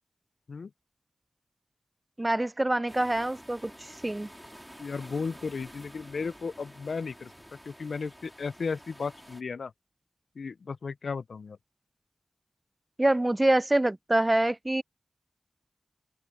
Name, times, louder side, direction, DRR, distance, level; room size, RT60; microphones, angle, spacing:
voice 1, 2.2-3.7 4.0-4.3 13.0-14.8, right 1 dB, 20° right, 0.3 m, -25 dB
sound 1, 2.9-9.4, equal, ahead, 3.0 m, -50 dB
voice 2, 4.8-7.3 7.7-9.7 10.4-11.6, left 5 dB, 90° left, 0.4 m, -35 dB
wide cardioid pair, 70°, 0 cm